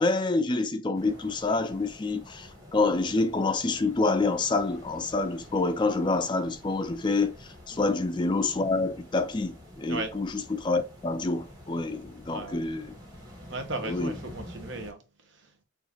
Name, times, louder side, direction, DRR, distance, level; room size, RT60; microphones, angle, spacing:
voice 1, 0.0-12.9 13.9-14.2, left 3 dB, 20° left, 0.3 m, -27 dB
sound 1, 0.9-14.9, equal, 20° right, 1.3 m, -48 dB
voice 2, 12.3-12.7 13.5-15.6, right 2 dB, 60° right, 1.0 m, -37 dB
6.3 x 2.5 x 2.9 m
head